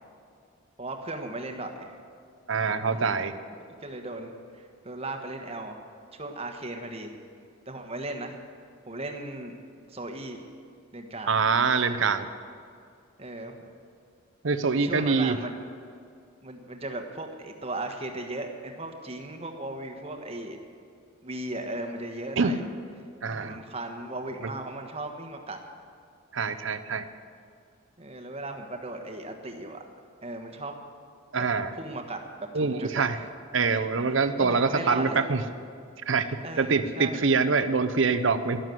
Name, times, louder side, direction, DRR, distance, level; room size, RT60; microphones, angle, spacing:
voice 1, 0.8-2.0 2.9-3.1 3.8-5.8 6.1-7.1 7.7-8.4 8.9-9.6 9.9-10.5 10.9-11.4 13.2-13.7 14.8-15.5 16.4-20.6 21.2-22.6 23.3-25.6 28.0-29.8 30.2-30.8 31.4-31.5 31.8-32.2 32.5-33.3 34.4-35.3 36.4-37.3, right 2 dB, 30° right, 4 dB, 1.3 m, -37 dB
voice 2, 2.5-3.3 11.3-12.3 14.4-15.4 22.4-22.5 23.2-23.6 26.3-27.1 31.3-31.7 32.5-33.2 33.5-35.4 36.1-38.6, right 4 dB, 65° right, 10 dB, 0.7 m, -25 dB
12.5 x 11.5 x 7.8 m, 2.3 s
head